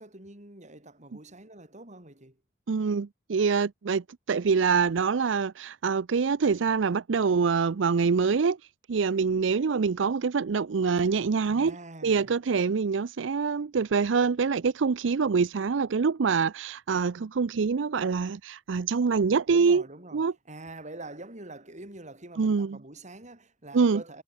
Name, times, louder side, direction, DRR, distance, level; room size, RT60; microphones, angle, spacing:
voice 1, 0.0-2.4 11.5-12.3 19.5-24.2, right 2 dB, 40° right, 7.4 m, -45 dB
voice 2, 2.7-8.6 8.9-11.7 12.0-19.8 20.1-20.3 22.4-22.8 23.7-24.0, right 5 dB, 70° right, 0.5 m, -25 dB
head